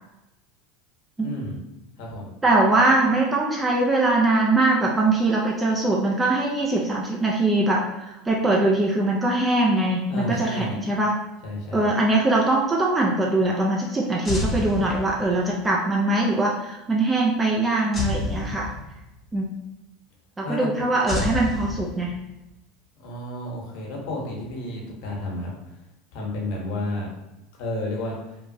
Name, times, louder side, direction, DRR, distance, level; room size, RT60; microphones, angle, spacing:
voice 1, 1.2-1.6 2.0-2.3 10.1-10.8 11.4-11.9 20.4-20.7 23.0-25.5 26.1-27.1 27.6-28.1, left 1 dB, 65° left, -1 dB, 0.9 m, -31 dB
voice 2, 2.4-11.1 11.7-18.7 19.3-19.5 20.4-22.1, right 2 dB, 15° right, -2 dB, 0.4 m, -22 dB
sound 1, 14.3-15.5 17.9-19.2 21.1-22.4, left 2 dB, 20° left, 0.7 m, -29 dB
2.9 x 2.2 x 2.6 m, 0.95 s
hypercardioid pair, 100°, 0 cm